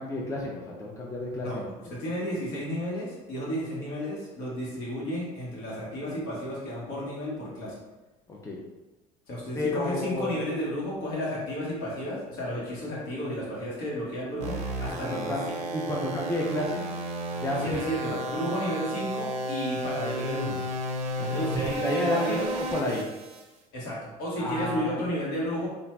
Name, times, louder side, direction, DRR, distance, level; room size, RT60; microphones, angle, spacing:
voice 1, 0.0-1.5 8.3-8.6 9.5-10.4 15.0-15.4 15.7-16.8 17.3-17.8 21.2-23.1 24.4-25.0, left 2 dB, 15° left, -3 dB, 0.5 m, -31 dB
voice 2, 1.4-7.7 9.3-15.5 17.6-20.6 21.2-22.5 23.7-25.7, equal, 75° left, -6 dB, 1.2 m, -32 dB
sound 1, 14.4-23.4, right 1 dB, 40° right, 0.5 m, -33 dB
2.9 x 2.5 x 2.2 m, 1.1 s
supercardioid pair, 95°, 17 cm